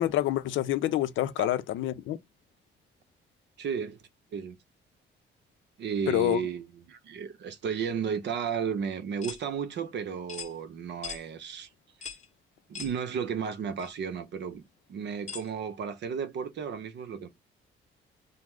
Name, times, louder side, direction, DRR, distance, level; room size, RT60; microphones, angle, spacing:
voice 1, 0.0-2.2 6.1-6.4, left 13 dB, 75° left, 0.5 m, -27 dB
voice 2, 3.6-4.0 4.3-4.6 5.8-11.7 12.7-17.3, right 7 dB, 60° right, 0.7 m, -33 dB
sound 1, 9.2-9.4 10.3-10.5 11.0-11.2 12.0-12.3 12.7-13.0 13.8-13.9 15.3-15.5, left 6 dB, 35° left, 0.8 m, -40 dB
3.0 x 2.1 x 3.5 m
cardioid pair, 90°, 20 cm